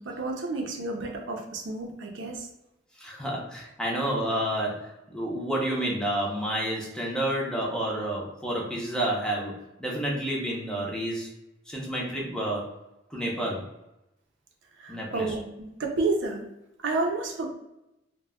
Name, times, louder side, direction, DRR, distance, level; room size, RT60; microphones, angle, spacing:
voice 1, 0.0-2.5 14.8-16.4 16.8-17.5, right 3 dB, 80° right, 1 dB, 0.5 m, -30 dB
voice 2, 3.0-9.5 9.8-11.3 11.7-12.7 13.1-13.6 14.9-15.3, right 1 dB, 5° left, -3 dB, 0.5 m, -30 dB
2.2 x 2.1 x 3.4 m, 0.90 s
head